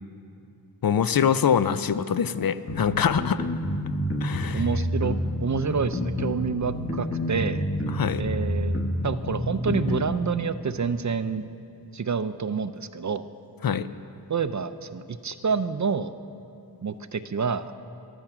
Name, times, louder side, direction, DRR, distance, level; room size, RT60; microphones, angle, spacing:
voice 1, 0.8-3.5 4.2-4.6 7.9-8.2 13.6-13.9, left 7 dB, 60° left, 13 dB, 0.5 m, -24 dB
sound 1, 2.7-10.1, left 1 dB, 35° left, 1.3 m, -28 dB
voice 2, 4.5-5.1 5.4-7.6 8.2-11.5 11.9-13.3 14.3-16.1 16.8-17.7, right 5 dB, 45° right, 12 dB, 0.5 m, -28 dB
14.5 x 12.0 x 5.9 m, 2.7 s
wide cardioid pair, 80°, 41 cm